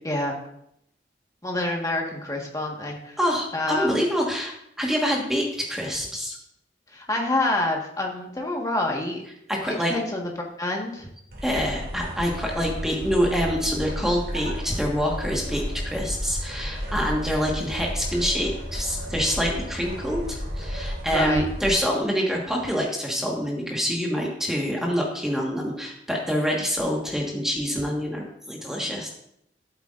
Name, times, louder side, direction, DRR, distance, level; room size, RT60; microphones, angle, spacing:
voice 1, 1.4-3.2 3.5-3.9 6.9-9.2 9.7-10.3 10.6-11.1 21.1-21.5, left 2 dB, 20° left, 0 dB, 1.5 m, -27 dB
voice 2, 3.2-6.4 9.5-9.9 11.4-29.1, equal, 5° right, -2 dB, 1.5 m, -26 dB
sound 1, 11.3-21.7, equal, 60° right, 2.6 m, -32 dB
12.5 x 8.0 x 2.6 m, 0.73 s
head